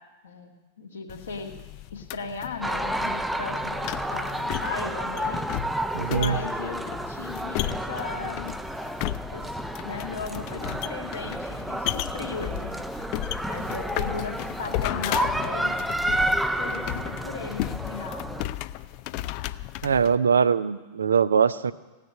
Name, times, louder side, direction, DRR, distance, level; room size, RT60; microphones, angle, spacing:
voice 1, 0.2-1.5 1.9-5.4 6.1-6.8 7.1-8.6 9.3-12.8 13.5-15.7 16.6-18.5, left 5 dB, 70° left, 1 dB, 2.0 m, -37 dB
sound 1, 1.1-20.2, left 15 dB, 45° left, 0.4 m, -35 dB
sound 2, 2.6-18.4, right 1 dB, 5° right, 0.6 m, -31 dB
voice 2, 5.9-6.4 19.8-21.7, right 6 dB, 70° right, 15 dB, 0.5 m, -22 dB
17.0 x 6.6 x 9.4 m, 1.2 s
figure-of-eight pair, 90°, 0 cm